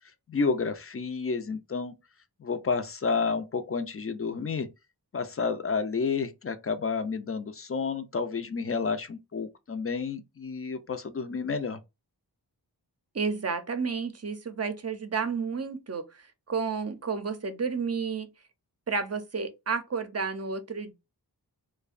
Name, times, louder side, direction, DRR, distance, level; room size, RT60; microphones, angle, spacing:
voice 1, 0.3-1.9 2.4-4.7 5.1-11.8, left 5 dB, 35° left, 0.4 m, -30 dB
voice 2, 13.1-18.3 18.9-20.9, right 5 dB, 40° right, 0.5 m, -31 dB
2.6 x 2.1 x 2.4 m
wide cardioid pair, 55°, 40 cm